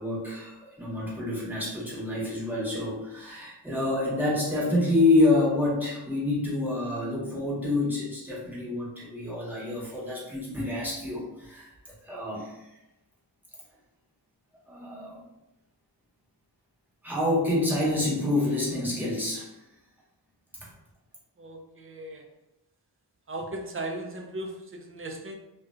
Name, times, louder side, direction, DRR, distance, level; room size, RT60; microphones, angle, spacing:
voice 1, 0.0-12.7 14.7-15.2 17.0-19.5 20.6-20.7, left 2 dB, 5° right, -7 dB, 1.0 m, -27 dB
voice 2, 21.4-22.2 23.3-25.4, right 1 dB, 30° right, 2 dB, 0.4 m, -37 dB
2.5 x 2.1 x 2.4 m, 0.93 s
cardioid pair, 60°, 43 cm